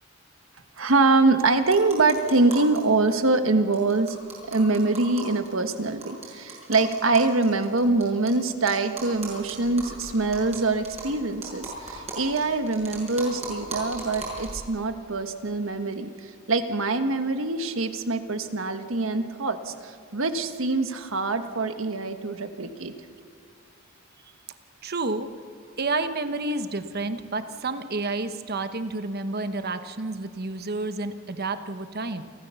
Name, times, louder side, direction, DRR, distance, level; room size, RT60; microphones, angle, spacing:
voice 1, 0.8-4.2 4.5-22.9, right 3 dB, 80° right, 8 dB, 1.4 m, -24 dB
sound 1, 1.7-2.8 3.1-3.2 3.4-3.5 3.7-8.3 8.7-14.7, right 2 dB, 30° right, 6.2 m, -38 dB
voice 2, 24.8-25.3 25.8-32.2, right 3 dB, 50° right, 10 dB, 1.1 m, -30 dB
28.5 x 14.0 x 7.0 m, 2.4 s
head